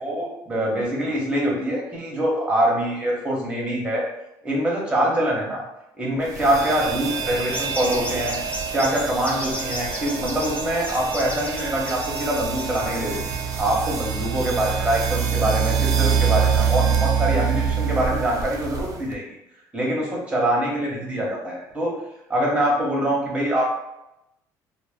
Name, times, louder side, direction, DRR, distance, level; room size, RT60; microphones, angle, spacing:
voice 1, 0.0-4.0 4.4-5.6 6.0-8.4 8.7-13.2 13.6-19.4 19.7-22.0 22.3-23.6, right 1 dB, 15° right, -3 dB, 0.9 m, -24 dB
sound 1, 6.3-19.2, right 7 dB, 45° right, 0.4 m, -25 dB
sound 2, 7.5-13.6, left 2 dB, 15° left, 0.4 m, -34 dB
2.0 x 2.0 x 3.3 m, 0.89 s
cardioid pair, 110°, 8 cm